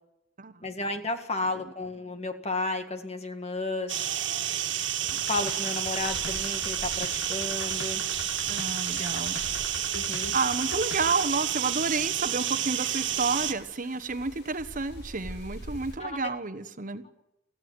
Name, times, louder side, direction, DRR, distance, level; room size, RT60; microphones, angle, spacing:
voice 1, 0.6-4.2 5.3-8.0 9.0-9.1 9.9-10.3 16.0-16.2, left 2 dB, 35° left, 7 dB, 1.8 m, -33 dB
sound 1, 3.9-13.5, right 11 dB, 80° right, 1.6 m, -30 dB
sound 2, 5.1-11.3, left 4 dB, 80° left, 1.2 m, -41 dB
sound 3, 6.0-16.0, equal, 60° left, 3.7 m, -47 dB
voice 2, 8.5-9.4 10.3-17.0, right 4 dB, 45° right, 11 dB, 1.1 m, -30 dB
24.5 x 15.5 x 9.4 m, 0.92 s
head